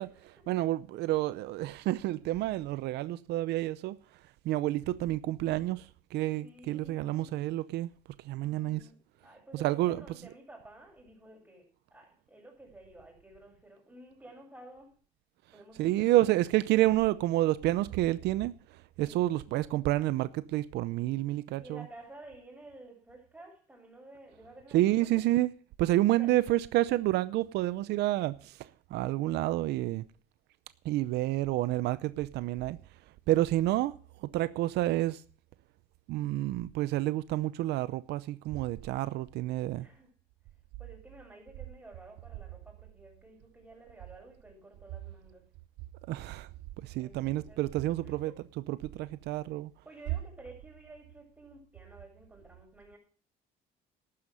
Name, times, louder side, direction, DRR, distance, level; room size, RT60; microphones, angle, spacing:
voice 1, 0.0-4.0 4.4-7.9 8.2-8.9 9.6-10.0 15.8-21.9 24.7-25.5 25.8-30.0 30.8-32.8 33.3-33.9 34.2-35.2 36.1-39.9 46.1-46.5 46.8-48.3 48.7-49.7, right 16 dB, 80° right, 0.6 m, -29 dB
voice 2, 6.4-7.3 8.3-9.0 9.2-11.6 11.9-14.9 15.5-16.3 19.0-19.2 21.6-25.2 26.1-26.3 39.7-40.1 40.8-45.4 47.0-47.6 48.0-48.4 49.9-53.0, right 1 dB, 10° right, 7.3 m, -52 dB
12.5 x 9.6 x 6.5 m
cardioid pair, 110°, 17 cm